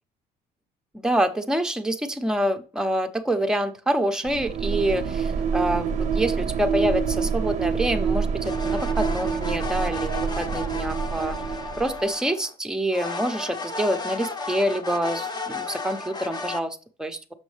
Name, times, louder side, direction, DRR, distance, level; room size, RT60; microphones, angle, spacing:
voice 1, 0.9-11.4 11.8-17.2, right 1 dB, 5° right, 6 dB, 0.7 m, -26 dB
sound 1, 4.2-12.0, right 6 dB, 45° right, 0.6 m, -26 dB
sound 2, 8.4-12.5 12.9-16.6, left 3 dB, 25° left, 0.9 m, -34 dB
6.2 x 6.1 x 3.3 m, 0.37 s
cardioid pair, 110°, 17 cm